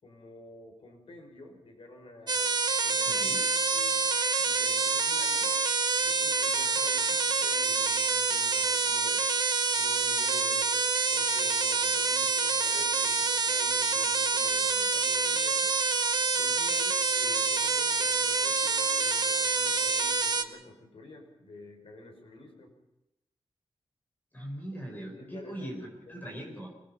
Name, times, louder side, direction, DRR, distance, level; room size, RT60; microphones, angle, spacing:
voice 1, 0.0-2.5 2.8-3.2 3.7-5.5 6.0-9.2 9.8-15.7 16.3-22.7 25.0-25.7 26.1-26.3, left 2 dB, 75° left, 3 dB, 5.5 m, -50 dB
sound 1, 2.3-20.4, right 4 dB, 45° right, 1.2 m, -27 dB
voice 2, 3.1-3.4 24.3-26.7, right 1 dB, 20° left, 0 dB, 4.9 m, -40 dB
25.5 x 19.0 x 5.8 m, 0.91 s
wide cardioid pair, 140°, 10 cm